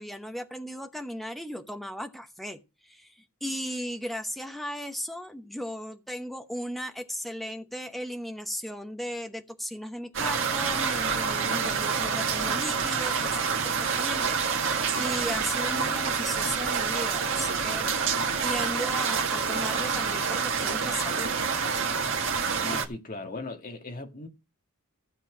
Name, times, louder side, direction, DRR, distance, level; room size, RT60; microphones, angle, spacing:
voice 1, 0.0-17.9 18.4-21.3, equal, ahead, 0.9 m, -36 dB
sound 1, 10.1-22.9, right 5 dB, 60° right, 1.8 m, -27 dB
voice 2, 22.6-24.3, left 2 dB, 40° left, 1.7 m, -38 dB
15.5 x 7.1 x 5.0 m
head